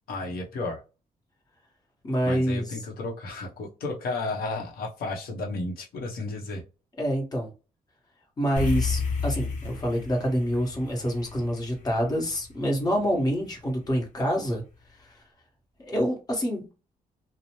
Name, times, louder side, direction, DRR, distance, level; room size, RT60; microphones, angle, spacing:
voice 1, 0.1-0.8 2.2-6.6, left 2 dB, 85° left, 0.8 m, -33 dB
voice 2, 2.0-2.8 7.0-7.5 8.4-14.6 14.9-15.1 15.8-16.8, equal, 25° left, 1.1 m, -27 dB
sound 1, 8.6-13.1, left 4 dB, 55° left, 0.9 m, -32 dB
2.7 x 2.1 x 2.9 m
cardioid pair, 115°, 15 cm